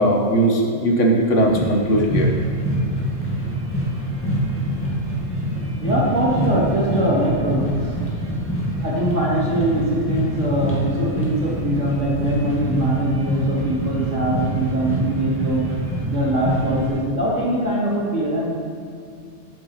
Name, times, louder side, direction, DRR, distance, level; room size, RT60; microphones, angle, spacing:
voice 1, 0.0-2.3, right 1 dB, 70° left, 1 dB, 1.6 m, -18 dB
sound 1, 1.4-17.0, equal, 10° left, 1.9 m, -25 dB
voice 2, 5.8-8.0 8.8-15.7 16.1-18.5, right 1 dB, 70° right, -5 dB, 3.0 m, -22 dB
11.5 x 8.5 x 4.2 m, 2.4 s
omnidirectional pair, 1.3 m